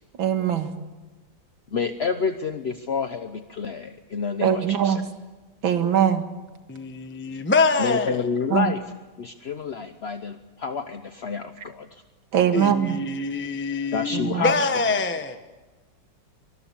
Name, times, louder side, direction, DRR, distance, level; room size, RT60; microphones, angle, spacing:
voice 1, 0.2-0.7 4.4-5.0 5.6-6.2 8.5-8.7 12.3-13.0 14.1-14.4, right 9 dB, 70° right, 2.5 m, -21 dB
voice 2, 1.7-5.0 7.8-8.8 9.2-11.9 13.9-14.5, left 5 dB, 50° left, 0.8 m, -28 dB
voice 3, 6.7-8.3 12.5-15.4, left 3 dB, 10° left, 0.9 m, -25 dB
24.5 x 20.5 x 7.1 m
omnidirectional pair, 2.3 m